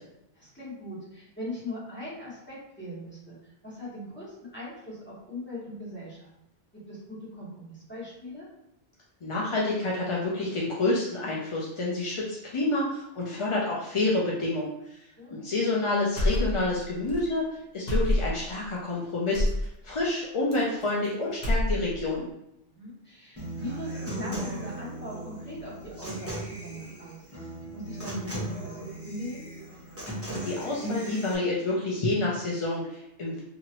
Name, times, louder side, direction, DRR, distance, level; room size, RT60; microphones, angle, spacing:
voice 1, 0.3-6.3 6.7-8.5 15.2-15.4 22.7-27.3 27.7-29.5, left 1 dB, 10° left, -9 dB, 1.3 m, -40 dB
voice 2, 9.2-15.0 15.3-17.5 17.7-22.3 30.4-33.4, left 2 dB, 45° left, -4 dB, 0.4 m, -28 dB
sound 1, 16.2-16.8 17.1-17.2 17.9-18.5 19.3-19.7 20.5-21.1 21.3-22.1, left 1 dB, 70° left, 1.1 m, -26 dB
Human voice / Acoustic guitar, 23.4-31.3, right 1 dB, 15° right, 1.1 m, -37 dB
2.8 x 2.5 x 2.9 m, 0.80 s
omnidirectional pair, 1.1 m